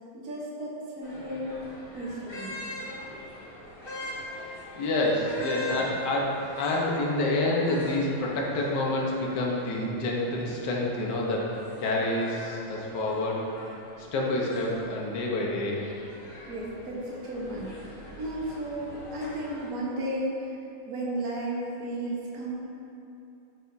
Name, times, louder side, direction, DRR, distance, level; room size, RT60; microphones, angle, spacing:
voice 1, 0.1-1.6 1.9-2.7 16.5-20.5 20.8-22.6, right 1 dB, 45° right, -5 dB, 1.6 m, -34 dB
sound 1, 1.0-19.7, left 1 dB, 40° left, 1.7 m, -43 dB
voice 2, 4.8-11.5 11.8-13.4 14.0-15.8, left 2 dB, 60° left, -3 dB, 1.6 m, -28 dB
14.0 x 4.9 x 2.7 m, 2.7 s
omnidirectional pair, 2.3 m